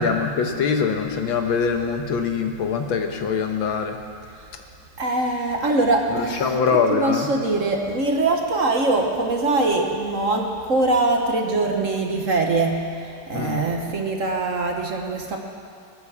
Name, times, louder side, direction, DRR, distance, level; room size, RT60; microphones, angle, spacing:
voice 1, 0.0-4.0 6.1-7.3 13.3-13.6, left 5 dB, 80° left, 5 dB, 1.9 m, -23 dB
voice 2, 5.0-6.6 6.9-15.4, right 2 dB, 45° right, 2 dB, 1.3 m, -23 dB
20.0 x 8.5 x 7.2 m, 2.5 s
omnidirectional pair, 2.1 m